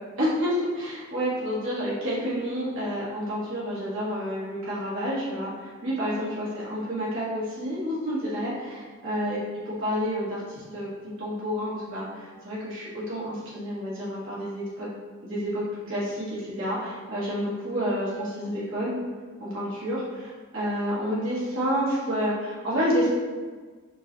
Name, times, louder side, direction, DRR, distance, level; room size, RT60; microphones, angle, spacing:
voice 1, 0.2-9.4 9.6-10.9 11.2-14.9 15.2-15.6 15.9-19.0 19.4-23.1, equal, 60° right, -9 dB, 1.4 m, -29 dB
3.8 x 3.2 x 2.6 m, 1.4 s
head